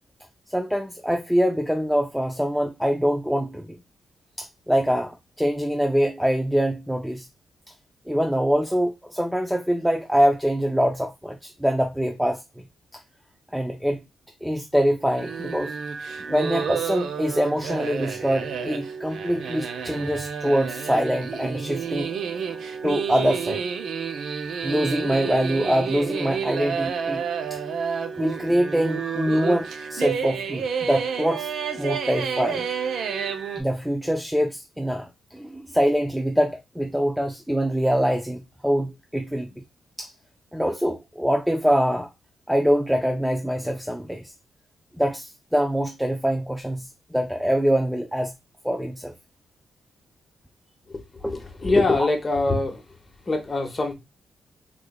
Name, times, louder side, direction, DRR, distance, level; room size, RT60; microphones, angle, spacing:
voice 1, 0.5-3.8 4.4-7.3 8.1-12.4 12.9-13.0 13.5-14.0 14.4-15.8 16.2-22.1 22.8-23.6 24.6-27.6 28.2-31.5 31.8-32.6 33.6-39.6 40.0-40.1 40.5-42.1 42.5-44.3 45.0-48.3 48.6-49.1 51.2-51.4, equal, ahead, 0.4 m, -24 dB
sound 1, 15.2-33.6, right 6 dB, 75° right, 0.5 m, -30 dB
voice 2, 50.9-52.8 53.3-53.9, left 2 dB, 25° left, 0.9 m, -24 dB
3.7 x 3.2 x 2.2 m
cardioid pair, 120°, 0 cm